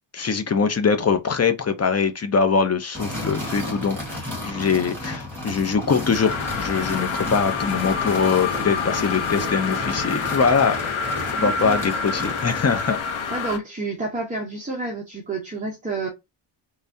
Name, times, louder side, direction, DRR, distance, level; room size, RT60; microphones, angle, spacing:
voice 1, 0.1-10.9 11.4-13.0, left 5 dB, 35° left, 0.6 m, -22 dB
sound 1, 2.9-13.0, left 1 dB, 5° left, 1.7 m, -33 dB
sound 2, 6.1-13.6, left 5 dB, 80° left, 0.8 m, -27 dB
voice 2, 11.4-11.8 13.3-16.1, right 3 dB, 15° right, 0.9 m, -29 dB
3.5 x 3.2 x 2.6 m
wide cardioid pair, 155°, 47 cm